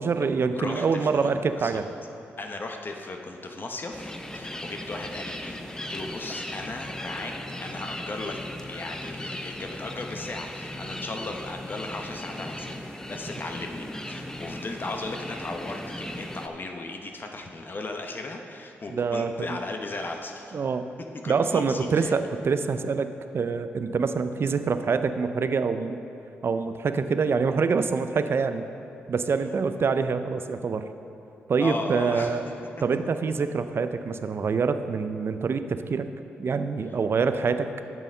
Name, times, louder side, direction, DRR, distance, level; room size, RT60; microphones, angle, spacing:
voice 1, 0.0-1.9 18.9-19.6 20.5-20.9 21.3-23.1 23.3-26.0 26.4-28.7 29.1-30.9 31.5-32.4 32.8-36.1 36.4-37.7, right 5 dB, 55° right, 10 dB, 0.5 m, -25 dB
voice 2, 0.5-1.8 2.4-7.3 7.6-8.4 8.7-12.7 13.0-20.6 21.1-22.1 29.7-29.9 31.6-32.5, left 2 dB, 45° left, 3 dB, 0.9 m, -36 dB
sound 1, 3.9-16.5, left 1 dB, 10° left, 0.8 m, -37 dB
9.1 x 6.3 x 5.5 m, 2.8 s
supercardioid pair, 45°, 5 cm